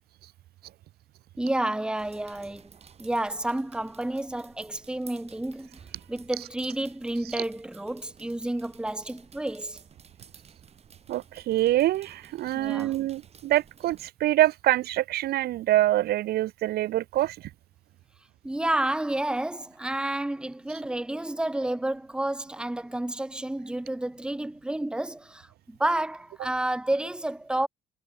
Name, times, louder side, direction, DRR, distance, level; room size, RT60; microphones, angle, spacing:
voice 1, 1.4-2.7 3.0-5.7 6.1-9.8 12.5-12.9 18.4-27.7, right 1 dB, 5° right, 1.1 m, -30 dB
sound 1, 2.0-14.1, right 7 dB, 40° right, 4.9 m, -54 dB
voice 2, 11.1-17.5, right 15 dB, 70° right, 0.9 m, -25 dB
cardioid pair, 110°, 17 cm